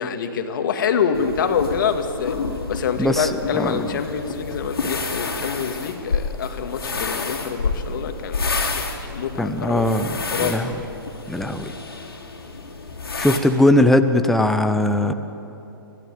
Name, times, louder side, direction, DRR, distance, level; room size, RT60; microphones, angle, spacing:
voice 1, 0.0-2.4 2.7-9.9 10.3-10.6 13.3-13.4, left 6 dB, 60° left, 6 dB, 2.2 m, -26 dB
sound 1, 1.1-13.4, left 4 dB, 80° left, 3.3 m, -29 dB
voice 2, 3.0-3.8 9.4-10.1 10.4-10.7 11.3-11.7 13.2-15.1, left 1 dB, ahead, 8 dB, 0.9 m, -19 dB
25.5 x 16.5 x 9.1 m, 3.0 s
figure-of-eight pair, 125°, 13 cm